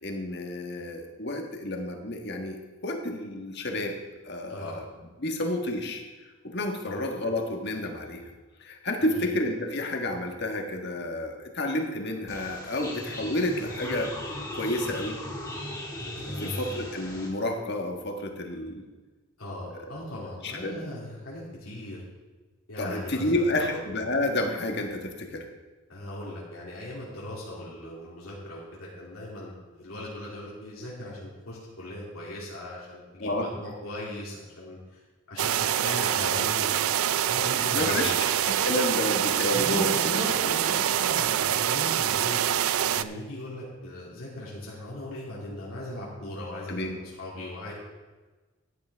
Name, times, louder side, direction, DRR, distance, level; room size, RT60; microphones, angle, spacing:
voice 1, 0.0-3.9 4.2-4.8 5.2-6.0 6.4-8.2 8.6-14.1 14.5-15.2 16.4-18.8 19.8-19.9 20.4-20.7 22.8-25.5 33.2-33.5 37.7-38.1 38.5-39.9 40.4-40.5 46.7-47.0, left 1 dB, 55° left, 3 dB, 1.5 m, -30 dB
sound 1, 12.3-17.3, left 1 dB, 15° left, 2.2 m, -38 dB
voice 2, 16.2-16.8 19.4-22.0 22.7-23.8 25.9-35.0 35.3-36.7 37.3-38.2 39.5-42.4 42.9-47.7, left 1 dB, 85° left, -6 dB, 2.7 m, -38 dB
sound 2, 35.4-43.0, right 10 dB, 90° right, 0.4 m, -25 dB
14.0 x 10.5 x 3.5 m, 1.3 s
head